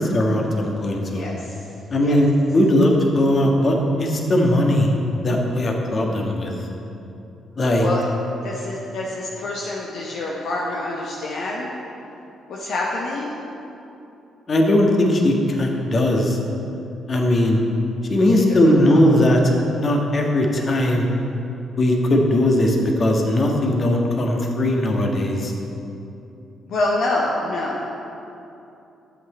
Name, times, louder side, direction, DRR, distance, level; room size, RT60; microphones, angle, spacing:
voice 1, 0.0-1.2 1.9-4.9 5.2-6.5 7.6-7.9 14.5-16.4 17.1-17.6 18.1-19.4 19.8-21.1 21.8-25.5, left 1 dB, 40° left, 1 dB, 1.6 m, -19 dB
voice 2, 1.1-1.6 2.0-2.2 7.8-8.1 8.4-11.7 12.5-13.3 18.3-19.1 26.7-27.9, left 2 dB, 55° left, -4 dB, 1.0 m, -27 dB
13.0 x 7.9 x 4.4 m, 2.8 s
figure-of-eight pair, 40°, 0 cm